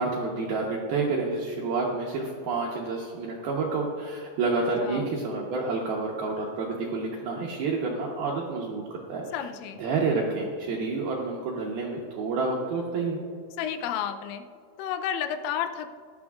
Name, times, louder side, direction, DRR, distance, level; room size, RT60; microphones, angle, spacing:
voice 1, 0.0-8.8 9.1-9.2 9.8-13.2, right 3 dB, 75° right, -2 dB, 2.2 m, -29 dB
voice 2, 9.3-9.8 13.6-14.5 14.8-15.9, left 9 dB, 85° left, 8 dB, 3.3 m, -31 dB
16.5 x 11.5 x 2.4 m, 2.1 s
omnidirectional pair, 5.7 m